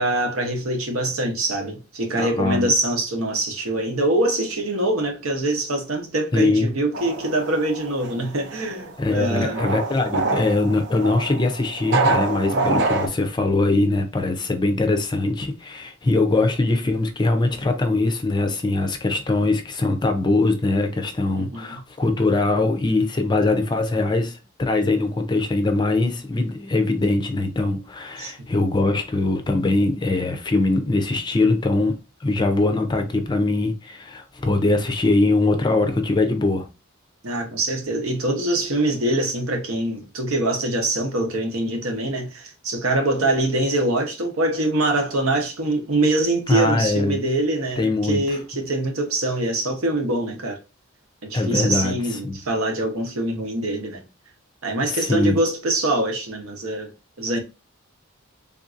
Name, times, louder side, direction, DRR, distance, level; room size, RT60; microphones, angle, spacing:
voice 1, 0.0-9.6 12.5-12.9 21.4-21.8 28.2-28.3 37.2-50.6 51.2-54.0 54.6-56.9 57.2-57.4, right 1 dB, 80° right, 0.9 m, -24 dB
voice 2, 2.1-2.7 6.3-6.7 9.0-36.7 46.5-47.2 47.8-48.2 51.3-52.4 54.8-55.4, left 2 dB, 20° left, 0.4 m, -22 dB
sound 1, 6.9-13.1, right 3 dB, 55° right, 0.4 m, -25 dB
3.6 x 2.6 x 2.4 m
head